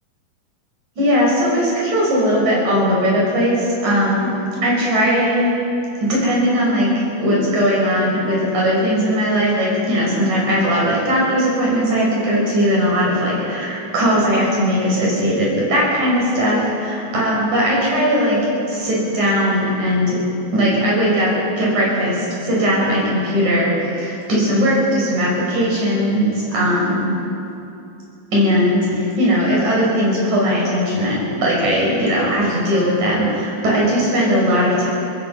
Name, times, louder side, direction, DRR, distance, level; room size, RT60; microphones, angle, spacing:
voice 1, 1.0-4.3 4.6-5.6 6.0-18.4 18.7-20.2 20.5-21.3 21.6-27.1 28.3-34.9, equal, 55° right, -4 dB, 7.1 m, -18 dB
24.5 x 19.0 x 5.7 m, 2.8 s
omnidirectional pair, 4.2 m